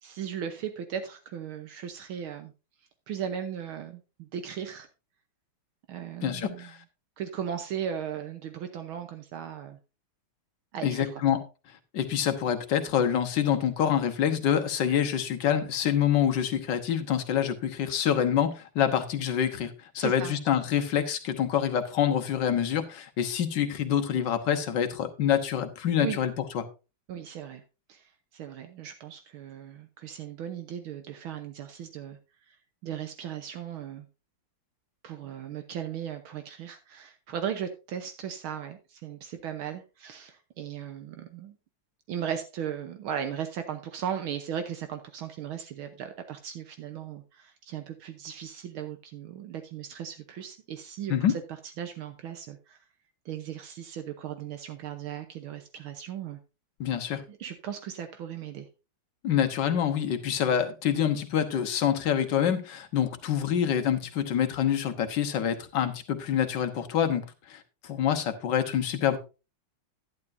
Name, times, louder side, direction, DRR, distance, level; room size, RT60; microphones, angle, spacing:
voice 1, 0.0-2.5 3.1-4.9 5.9-6.7 7.2-9.8 10.7-11.1 20.0-20.4 26.0-26.2 27.1-27.6 27.9-32.2 32.5-32.6 32.8-34.1 35.0-41.6 42.1-51.1 51.8-52.8 53.2-56.4 57.3-58.7, right 9 dB, 75° right, 7 dB, 1.8 m, -37 dB
voice 2, 6.2-6.8 10.8-11.4 11.9-26.7 51.1-51.4 56.8-57.2 59.2-69.2, left 9 dB, 60° left, 7 dB, 1.7 m, -26 dB
11.0 x 11.0 x 2.6 m, 0.30 s
omnidirectional pair, 2.3 m